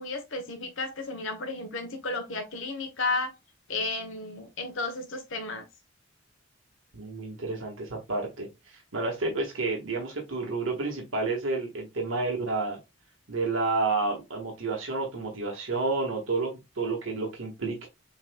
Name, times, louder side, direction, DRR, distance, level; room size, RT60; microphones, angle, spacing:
voice 1, 0.0-3.3 3.7-5.6, left 3 dB, 70° left, 1.0 m, -33 dB
voice 2, 6.9-12.8 13.3-17.9, right 3 dB, 75° right, 1.5 m, -30 dB
7.2 x 3.0 x 2.2 m
head